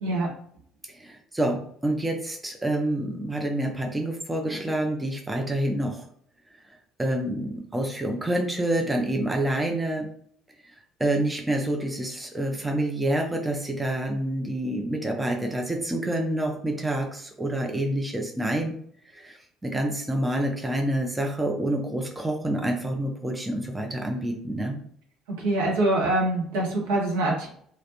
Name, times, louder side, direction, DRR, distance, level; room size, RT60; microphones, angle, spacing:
voice 1, 0.0-0.3 25.3-27.5, right 2 dB, 65° right, -3 dB, 0.8 m, -24 dB
voice 2, 0.9-6.0 7.0-10.1 10.6-10.7 11.0-18.7 19.1-24.8, right 1 dB, 10° right, 2 dB, 0.5 m, -27 dB
2.4 x 2.1 x 2.7 m, 0.62 s
figure-of-eight pair, 55°, 0 cm